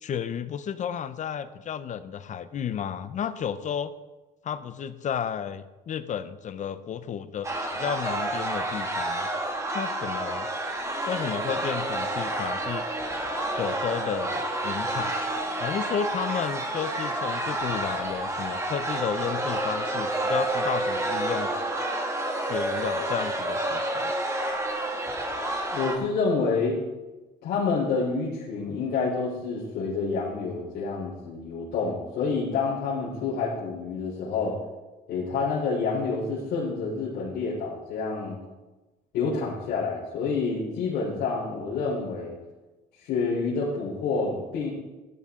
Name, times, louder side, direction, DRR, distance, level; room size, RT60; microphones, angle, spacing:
voice 1, 0.0-3.9 4.4-9.3 9.7-10.5 11.0-12.8 13.5-15.1 15.6-21.5 22.4-24.1, left 8 dB, 45° left, 13 dB, 0.7 m, -32 dB
sound 1, 7.4-26.0, right 1 dB, 15° right, 2.0 m, -29 dB
voice 2, 25.7-26.8 27.4-34.5 35.1-38.4 39.1-42.3 43.0-44.7, left 4 dB, 80° left, -8 dB, 3.9 m, -28 dB
13.5 x 11.5 x 3.8 m, 1.1 s
cardioid pair, 110°, 17 cm